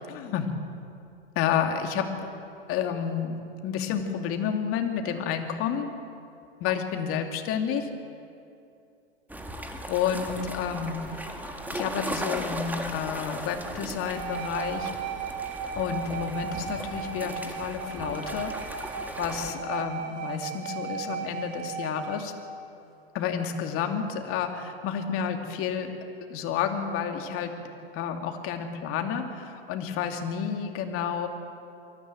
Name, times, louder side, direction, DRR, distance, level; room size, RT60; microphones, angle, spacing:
voice 1, 0.1-0.5 1.4-2.1 2.7-3.4 3.6-5.9 6.6-7.9 9.9-11.3 11.7-14.9 15.8-22.3 23.1-25.9 26.3-27.5 27.9-31.3, left 8 dB, 45° left, 5 dB, 2.5 m, -30 dB
sound 1, 9.3-19.5, right 1 dB, 5° right, 2.0 m, -37 dB
sound 2, 14.0-22.3, right 7 dB, 50° right, 3.1 m, -36 dB
23.5 x 14.5 x 7.7 m, 2.6 s
hypercardioid pair, 100°, 31 cm